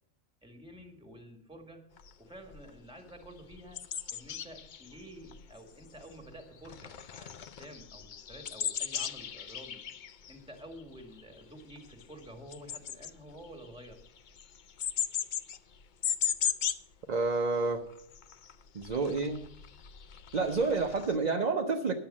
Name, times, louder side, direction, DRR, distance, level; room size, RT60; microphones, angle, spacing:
voice 1, 0.4-1.9 2.2-9.8 10.3-14.0, equal, 5° right, 4 dB, 1.8 m, -50 dB
sound 1, 2.0-2.1 2.5-2.7 3.1-6.4 6.7-16.9 17.3-17.4 17.7-21.2, left 8 dB, 55° left, 0.6 m, -37 dB
voice 2, 17.1-17.8 18.7-19.4 20.3-21.9, right 4 dB, 40° right, 4 dB, 0.8 m, -29 dB
10.5 x 7.8 x 7.2 m, 0.75 s
omnidirectional pair, 1.2 m